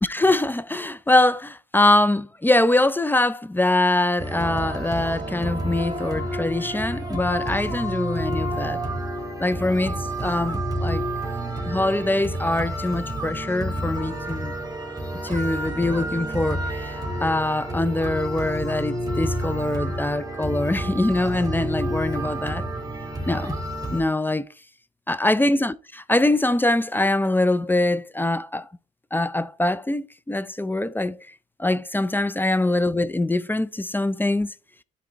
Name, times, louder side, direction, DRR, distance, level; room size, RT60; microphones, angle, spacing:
voice 1, 0.0-8.8 9.4-11.0 11.6-14.5 15.2-22.6 23.3-23.6 23.9-24.5 25.1-28.7 29.1-31.3 31.6-34.5, left 2 dB, 10° left, 0.4 m, -23 dB
sound 1, 4.2-24.0, right 1 dB, 20° right, 2.9 m, -29 dB
11.5 x 4.1 x 3.4 m
cardioid pair, 90°, 20 cm